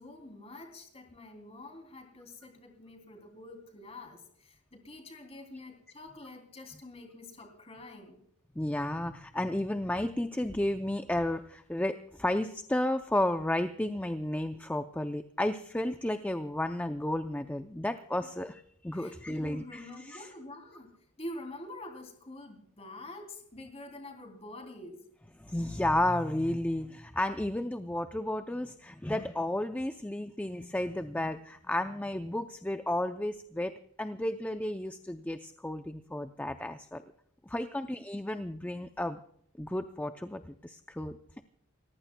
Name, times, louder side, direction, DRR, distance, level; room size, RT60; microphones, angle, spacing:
voice 1, 0.0-8.2 18.9-25.1 37.8-37.9, left 1 dB, 25° left, 3 dB, 3.0 m, -46 dB
voice 2, 8.6-20.3 25.4-37.0 37.5-39.2 39.6-41.2, left 1 dB, 5° left, 8 dB, 0.4 m, -32 dB
29.5 x 15.0 x 2.2 m, 0.69 s
head